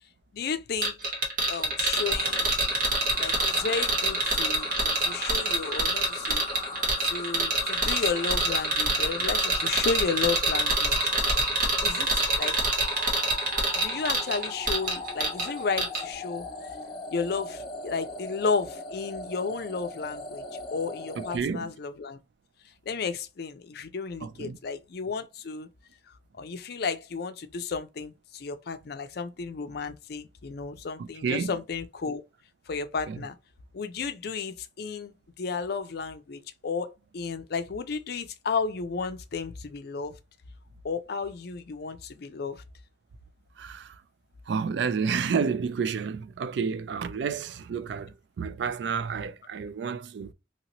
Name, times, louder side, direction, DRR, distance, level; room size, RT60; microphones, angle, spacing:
voice 1, 0.3-1.0 1.5-2.5 3.2-6.4 7.0-11.1 11.8-12.6 13.8-16.5 17.1-20.4 20.7-22.2 22.9-25.7 26.4-32.2 32.7-33.4 33.7-40.1 40.8-42.6, left 5 dB, 60° left, 0.5 m, -33 dB
sound 1, 0.8-15.5 15.8-16.0, right 2 dB, 50° right, 1.3 m, -26 dB
sound 2, 2.0-21.4, left 2 dB, 25° left, 0.7 m, -39 dB
voice 2, 21.2-21.7 24.2-24.6 31.0-31.5 33.1-33.2 43.6-43.9 44.5-50.3, right 6 dB, 65° right, 0.3 m, -30 dB
2.9 x 2.8 x 2.8 m
head